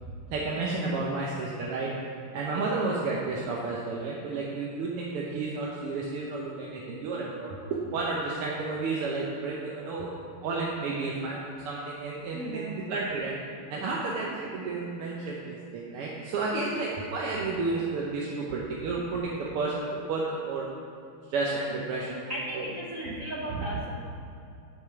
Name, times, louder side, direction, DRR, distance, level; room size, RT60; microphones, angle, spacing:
voice 1, 0.3-1.9 2.3-7.6 7.9-10.1 10.4-13.3 13.7-20.7 21.3-22.2 22.5-22.7 23.1-23.2 23.4-23.8, right 3 dB, 90° right, -3 dB, 1.8 m, -31 dB
voice 2, 12.3-12.8 18.5-18.6 21.9-23.9, right 1 dB, 65° right, -3 dB, 0.8 m, -36 dB
8.0 x 5.4 x 5.8 m, 2.6 s
omnidirectional pair, 2.4 m